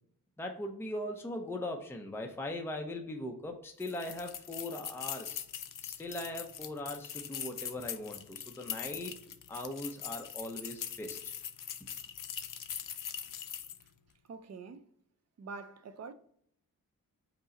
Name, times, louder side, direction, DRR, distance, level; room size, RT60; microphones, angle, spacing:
voice 1, 0.4-5.4 5.8-9.1 9.5-11.2, left 1 dB, 5° left, 0.5 m, -40 dB
sound 1, 3.8-13.9, left 9 dB, 65° left, 0.5 m, -42 dB
voice 2, 14.3-14.9 15.4-16.1, right 4 dB, 45° right, 0.5 m, -45 dB
5.3 x 2.1 x 3.7 m
cardioid pair, 85°, 35 cm